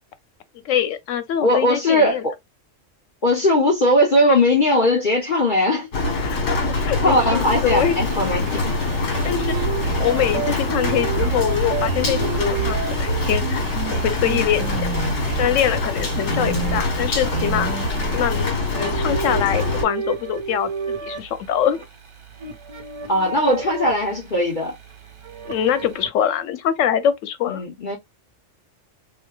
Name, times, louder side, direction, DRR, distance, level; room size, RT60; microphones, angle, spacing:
voice 1, 0.6-2.2 6.2-6.6 6.8-8.0 9.0-9.6 10.0-13.6 13.9-14.8 15.3-17.7 18.1-20.7 21.0-21.9 25.5-27.6, left 9 dB, 85° left, 1.0 m, -23 dB
voice 2, 1.4-2.3 3.2-5.9 7.0-8.8 16.3-16.7 23.1-24.8 27.5-28.0, left 1 dB, 45° left, 0.9 m, -19 dB
Rain, 5.9-19.8, left 2 dB, 65° left, 1.4 m, -24 dB
sound 1, 7.4-18.5, right 10 dB, 90° right, 1.0 m, -30 dB
sound 2, 18.7-26.1, right 5 dB, 35° right, 0.5 m, -33 dB
4.2 x 2.2 x 2.2 m
omnidirectional pair, 1.3 m